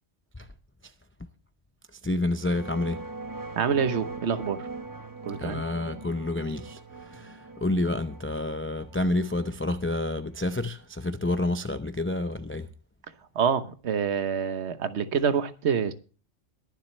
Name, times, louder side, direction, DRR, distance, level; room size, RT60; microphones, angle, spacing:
voice 1, 2.0-3.0 5.4-12.7, left 2 dB, 20° left, 0.4 m, -29 dB
sound 1, 2.4-11.0, right 3 dB, 20° right, 0.8 m, -42 dB
voice 2, 3.6-4.7 5.2-5.6 13.3-15.9, right 7 dB, 60° right, 1.3 m, -26 dB
22.0 x 7.4 x 3.2 m
omnidirectional pair, 1.3 m